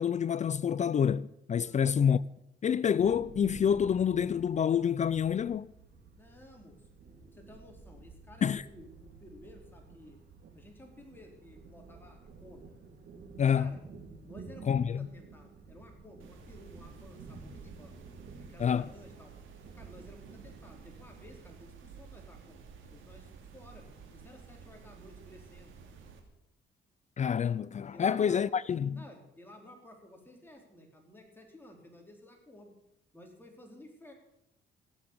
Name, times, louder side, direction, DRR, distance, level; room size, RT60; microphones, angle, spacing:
voice 1, 0.0-2.2 2.6-5.7 8.4-8.6 13.4-13.7 14.7-15.1 18.6-18.9 27.2-28.9, left 8 dB, 35° left, 0.4 m, -27 dB
sound 1, 3.0-21.3, right 4 dB, 60° right, 3.7 m, -52 dB
voice 2, 6.2-6.9 7.3-10.2 10.5-12.6 13.5-13.8 14.2-17.9 18.4-19.3 19.7-22.6 22.9-23.9 24.1-25.8 27.9-28.6 28.9-32.7 33.1-34.1, left 1 dB, 10° left, 4.3 m, -54 dB
sound 2, 16.2-26.2, right 6 dB, 80° right, 2.7 m, -52 dB
16.5 x 7.8 x 8.5 m
cardioid pair, 90°, 20 cm